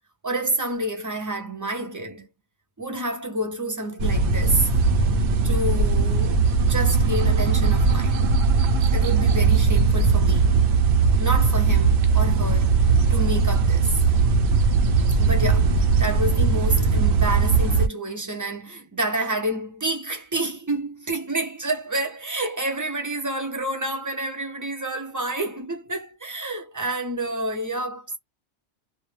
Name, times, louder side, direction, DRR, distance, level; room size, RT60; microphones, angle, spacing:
voice 1, 0.2-2.3 2.8-4.7 5.4-8.3 8.9-10.7 11.2-14.0 15.2-28.2, right 1 dB, 30° right, 0.3 m, -29 dB
sound 1, 4.0-17.9, right 4 dB, 65° right, 0.8 m, -19 dB
2.4 x 2.0 x 3.0 m
omnidirectional pair, 1.2 m